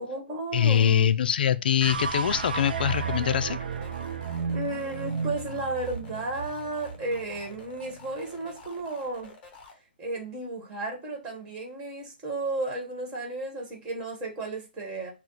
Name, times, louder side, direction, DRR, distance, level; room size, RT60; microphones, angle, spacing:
voice 1, 0.0-1.1 4.5-9.3 10.0-15.1, right 2 dB, 15° right, 1.5 m, -33 dB
voice 2, 0.5-3.6, left 9 dB, 60° left, 0.4 m, -23 dB
sound 1, 1.8-8.2, right 5 dB, 60° right, 0.6 m, -33 dB
sound 2, 3.7-9.7, left 4 dB, 25° left, 1.0 m, -49 dB
6.2 x 2.2 x 3.9 m
hypercardioid pair, 150°, 6 cm